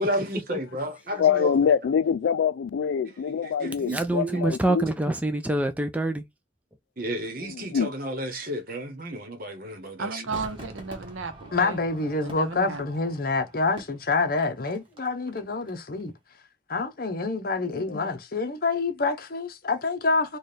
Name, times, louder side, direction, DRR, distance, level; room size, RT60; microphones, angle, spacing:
voice 1, 0.0-1.5 3.4-4.5 7.0-10.2, equal, 50° right, 1.0 m, -32 dB
voice 2, 1.2-4.8 7.4-7.9 17.7-18.1, left 7 dB, 75° left, 0.3 m, -25 dB
voice 3, 3.9-6.3, right 1 dB, 10° right, 0.3 m, -25 dB
voice 4, 10.0-11.8 12.2-12.8, right 4 dB, 85° right, 0.8 m, -34 dB
Crowd / Fireworks, 10.3-15.7 16.0-16.1, equal, 25° right, 1.1 m, -46 dB
voice 5, 11.5-16.1 16.7-20.4, left 3 dB, 50° left, 0.7 m, -27 dB
4.2 x 2.3 x 3.3 m
head